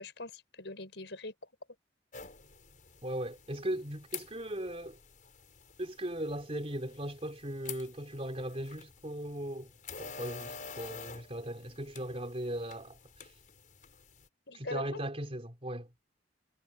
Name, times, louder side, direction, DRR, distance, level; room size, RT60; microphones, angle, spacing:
voice 1, 0.0-1.5 14.5-15.0, left 2 dB, 70° left, 6.1 m, -42 dB
sound 1, 2.1-14.3, left 6 dB, 45° left, 5.6 m, -49 dB
voice 2, 3.0-5.0 5.8-9.7 10.0-13.0 14.5-15.9, right 1 dB, 35° right, 3.7 m, -38 dB
head